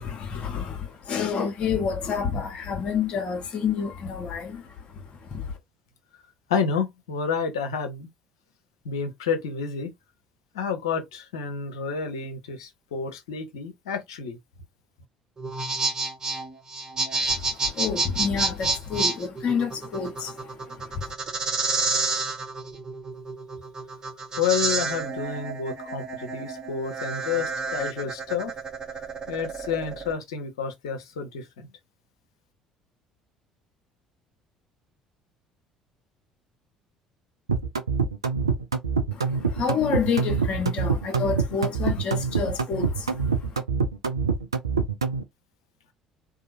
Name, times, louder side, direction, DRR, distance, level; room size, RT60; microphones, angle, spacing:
voice 1, 0.0-5.5 17.2-21.1 39.1-43.6, left 6 dB, 45° left, 1.0 m, -29 dB
voice 2, 6.5-8.1 8.8-9.9 10.5-14.4 24.4-28.5 29.3-31.7, left 6 dB, 75° left, 0.7 m, -29 dB
sound 1, 15.4-30.1, right 3 dB, 25° right, 1.2 m, -29 dB
sound 2, 37.5-45.2, right 5 dB, 85° right, 0.4 m, -25 dB
2.8 x 2.5 x 2.5 m
figure-of-eight pair, 55°, 3 cm